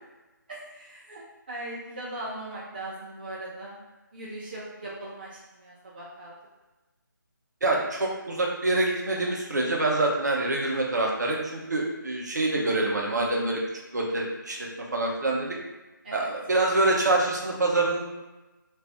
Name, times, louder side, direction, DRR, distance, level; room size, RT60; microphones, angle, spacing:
voice 1, 0.5-3.8 4.1-6.3 16.0-16.3, right 1 dB, 25° right, -7 dB, 0.5 m, -39 dB
voice 2, 7.6-13.6 13.9-14.6 14.9-15.6 16.1-18.0, right 2 dB, 55° right, -1 dB, 0.7 m, -25 dB
3.2 x 2.5 x 3.4 m, 1.1 s
figure-of-eight pair, 175°, 11 cm